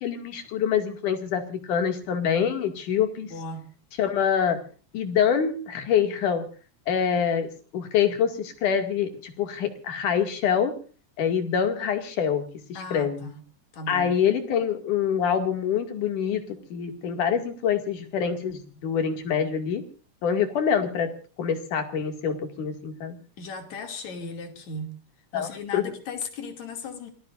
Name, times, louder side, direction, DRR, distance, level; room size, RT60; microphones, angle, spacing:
voice 1, 0.0-3.3 4.0-4.6 4.9-6.5 6.9-10.8 11.2-12.5 12.9-13.2 13.9-19.8 20.2-21.1 21.4-23.2 25.3-25.9, left 7 dB, 90° left, 3.9 m, -25 dB
voice 2, 3.3-3.7 12.7-13.4 13.7-14.1 23.4-27.1, left 3 dB, 65° left, 3.9 m, -37 dB
27.0 x 19.5 x 2.6 m
omnidirectional pair, 3.5 m